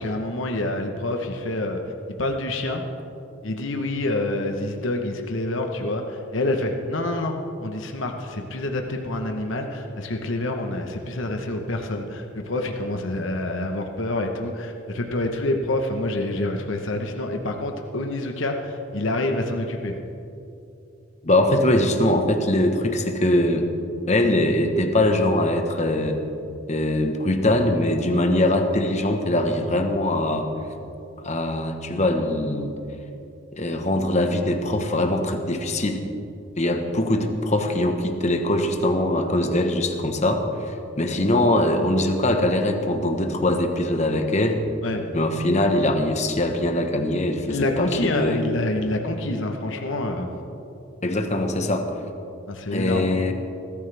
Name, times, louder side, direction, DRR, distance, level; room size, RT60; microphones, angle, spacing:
voice 1, 0.0-1.8 2.2-2.8 3.4-19.9 44.8-45.0 47.5-50.3 52.5-53.2, left 1 dB, 70° left, 3 dB, 1.1 m, -27 dB
voice 2, 21.2-23.7 24.1-26.2 26.7-30.5 31.2-32.7 33.5-36.0 36.6-44.6 45.1-48.4 51.0-51.9 52.7-53.3, left 1 dB, 35° left, 5 dB, 1.2 m, -22 dB
21.0 x 13.5 x 3.4 m, 2.8 s
head